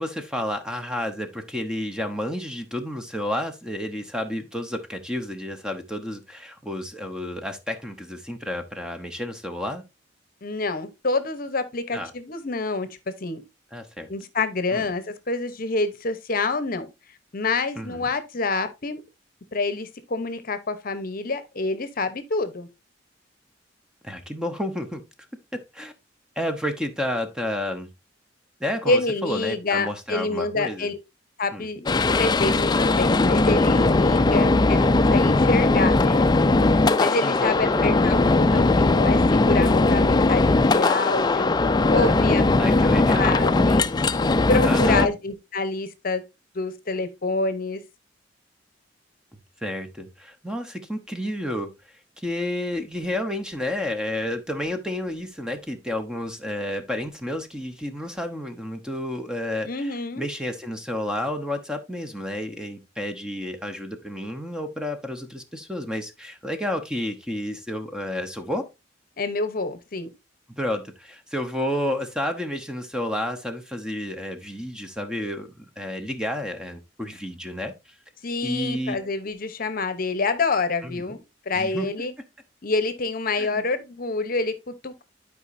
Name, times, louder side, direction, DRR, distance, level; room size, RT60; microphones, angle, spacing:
voice 1, 0.0-9.8 11.9-12.1 13.7-14.1 14.7-14.9 17.8-18.1 24.0-25.0 25.5-25.9 26.4-27.9 28.6-30.9 31.5-31.7 37.2-38.0 38.4-38.7 41.9-43.3 44.6-45.1 49.6-51.7 52.2-68.6 70.5-77.7 78.4-79.1 80.8-81.2 81.5-81.9 83.3-83.6, left 1 dB, 5° right, 0.8 m, -31 dB
voice 2, 10.4-13.4 14.1-16.9 17.3-19.0 19.5-22.7 28.9-31.0 31.4-36.3 36.7-41.5 41.9-43.9 44.5-46.2 46.5-47.8 59.7-60.3 69.2-70.1 78.2-82.1 82.6-85.0, left 3 dB, 50° left, 0.8 m, -27 dB
sound 1, 31.9-45.1, left 2 dB, 20° left, 0.4 m, -19 dB
11.5 x 4.9 x 2.6 m
head